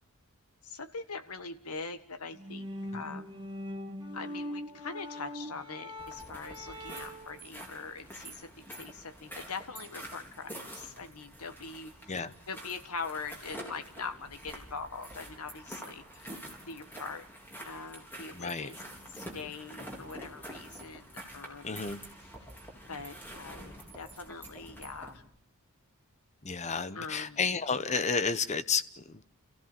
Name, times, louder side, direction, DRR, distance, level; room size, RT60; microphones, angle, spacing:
voice 1, 0.6-3.3 4.1-12.1 12.5-16.3 16.7-17.3 17.6-18.8 19.1-21.8 22.9-25.2 26.9-27.4, left 4 dB, 85° left, 1.6 m, -42 dB
sound 1, 2.3-7.4, left 1 dB, 20° right, 2.0 m, -41 dB
sound 2, 6.0-25.2, right 1 dB, 10° left, 4.2 m, -47 dB
voice 2, 18.3-18.7 21.6-22.0 26.4-29.2, left 5 dB, 30° left, 0.9 m, -31 dB
29.0 x 15.5 x 7.3 m
head